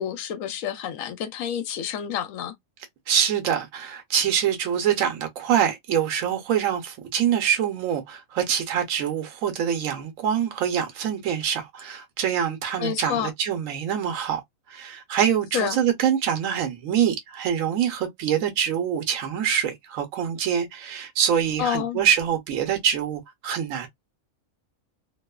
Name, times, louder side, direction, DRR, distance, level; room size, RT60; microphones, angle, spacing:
voice 1, 0.0-2.5 12.8-13.3 15.5-15.8 21.6-22.0, left 9 dB, 80° left, 1.0 m, -28 dB
voice 2, 3.1-14.4 14.7-23.9, right 9 dB, 80° right, 1.1 m, -25 dB
2.9 x 2.0 x 2.2 m
omnidirectional pair, 1.4 m